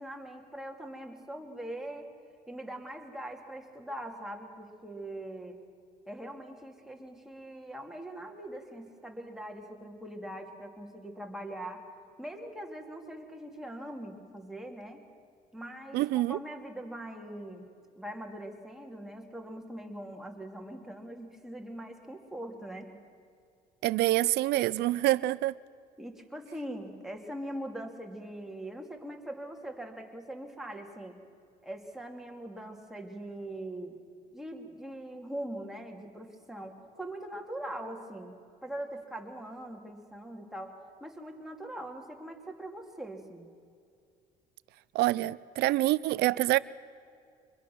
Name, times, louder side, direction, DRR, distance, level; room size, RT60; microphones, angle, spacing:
voice 1, 0.0-2.1 2.5-5.6 6.1-11.8 12.2-15.0 15.5-17.7 18.0-23.0 26.0-31.2 31.6-34.0 34.3-43.5, right 1 dB, ahead, 2.5 m, -42 dB
voice 2, 15.9-16.4 23.8-25.5 44.9-46.6, right 17 dB, 75° right, 0.4 m, -26 dB
24.5 x 21.5 x 6.1 m
cardioid pair, 110°, 17 cm